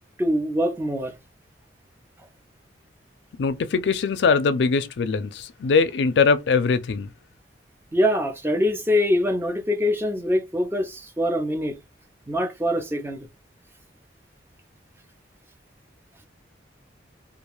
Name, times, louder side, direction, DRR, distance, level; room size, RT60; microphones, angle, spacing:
voice 1, 0.2-1.2 7.9-11.8 12.3-13.3, left 1 dB, 10° right, 0.5 m, -24 dB
voice 2, 3.4-7.1, left 5 dB, 70° left, 0.4 m, -21 dB
2.4 x 2.3 x 3.0 m
head